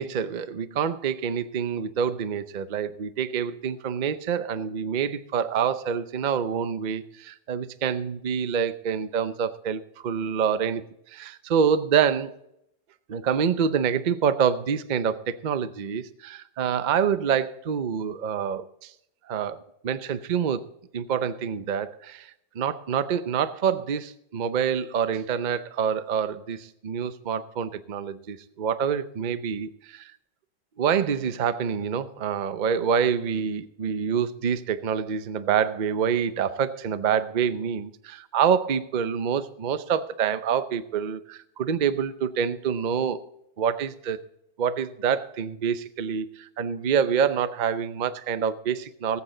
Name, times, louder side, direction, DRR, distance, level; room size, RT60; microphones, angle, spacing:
voice 1, 0.0-10.8 11.1-12.3 13.1-18.9 19.3-19.6 19.8-20.6 20.9-30.1 30.8-43.2 43.6-44.2 44.6-49.2, right 7 dB, 65° right, 12 dB, 0.4 m, -26 dB
19.0 x 8.7 x 3.9 m, 0.77 s
omnidirectional pair, 1.9 m